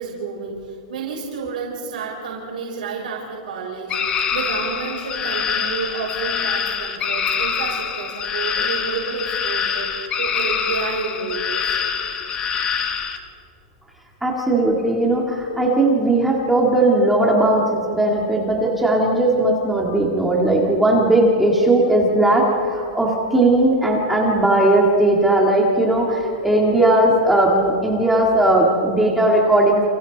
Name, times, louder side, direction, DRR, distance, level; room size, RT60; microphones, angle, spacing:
voice 1, 0.0-9.9 10.2-11.8, right 5 dB, 80° right, -3 dB, 5.3 m, -30 dB
sound 1, 3.9-13.2, left 7 dB, 15° left, 1.2 m, -25 dB
voice 2, 14.2-29.8, right 1 dB, 5° right, -2 dB, 1.9 m, -17 dB
29.5 x 29.0 x 4.0 m, 2.5 s
supercardioid pair, 180°, 5 cm